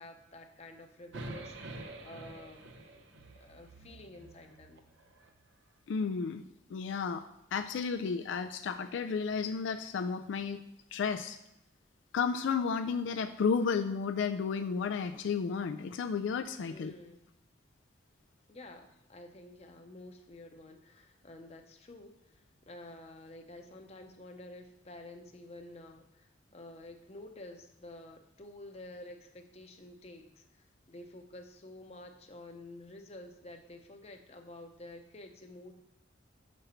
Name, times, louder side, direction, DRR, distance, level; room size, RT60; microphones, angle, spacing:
voice 1, 0.0-3.0 3.3-4.9 16.7-17.2 18.5-35.7, left 1 dB, 35° left, 5 dB, 0.7 m, -50 dB
sound 1, 1.1-5.4, right 2 dB, 75° right, 0.7 m, -47 dB
voice 2, 5.9-6.4 6.7-7.2 7.5-10.6 10.9-11.4 12.1-16.9, left 5 dB, 75° left, 8 dB, 0.3 m, -32 dB
6.9 x 5.2 x 4.3 m, 0.83 s
head